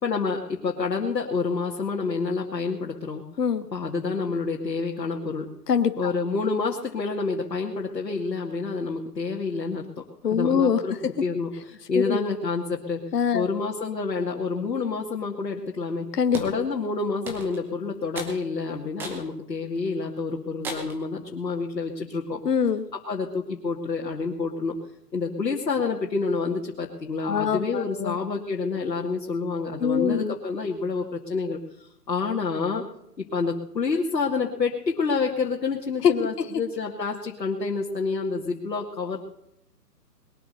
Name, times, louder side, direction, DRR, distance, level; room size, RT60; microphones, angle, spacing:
voice 1, 0.0-3.2 3.7-5.5 6.0-13.0 13.3-16.1 16.4-22.4 22.9-24.8 25.1-32.8 33.2-39.2, left 4 dB, 85° left, -1 dB, 2.4 m, -28 dB
voice 2, 5.7-6.1 10.2-10.8 11.9-12.2 13.1-13.5 16.1-16.4 22.4-22.8 27.3-28.2 29.8-30.3 36.0-36.1 36.4-36.5, left 7 dB, 70° left, 9 dB, 1.4 m, -23 dB
sound 1, 16.3-16.6 17.3-17.7 18.2-18.4 19.0-19.3 19.8-19.9 20.6-21.0, right 2 dB, 5° right, 0.8 m, -35 dB
21.0 x 8.4 x 6.8 m, 0.78 s
hypercardioid pair, 150°, 49 cm